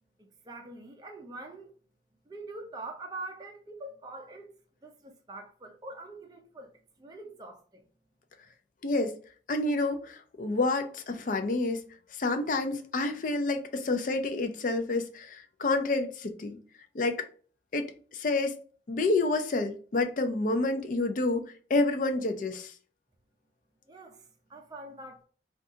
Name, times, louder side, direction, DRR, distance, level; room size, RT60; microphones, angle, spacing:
voice 1, 0.2-1.7 2.3-4.5 4.8-6.7 7.0-7.8 23.9-25.2, right 2 dB, 20° right, 0.4 m, -44 dB
voice 2, 8.8-9.2 9.5-11.8 12.1-16.6 16.9-17.3 17.7-18.5 18.9-22.7, left 2 dB, 45° left, 0.4 m, -29 dB
2.6 x 2.3 x 3.7 m
head